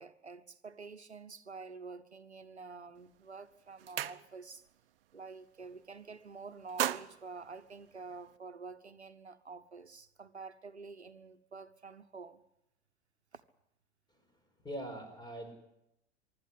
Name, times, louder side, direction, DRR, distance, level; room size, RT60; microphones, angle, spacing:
voice 1, 0.0-4.6 5.1-12.4, right 4 dB, 85° right, 1.0 m, -48 dB
sound 1, 3.0-3.2 3.5-4.7 5.0-5.3 5.6-6.2 6.5-8.4, right 12 dB, 60° right, 0.8 m, -39 dB
voice 2, 14.6-15.5, right 1 dB, 15° left, 4.9 m, -43 dB
24.5 x 12.5 x 9.7 m
figure-of-eight pair, 85°, 32 cm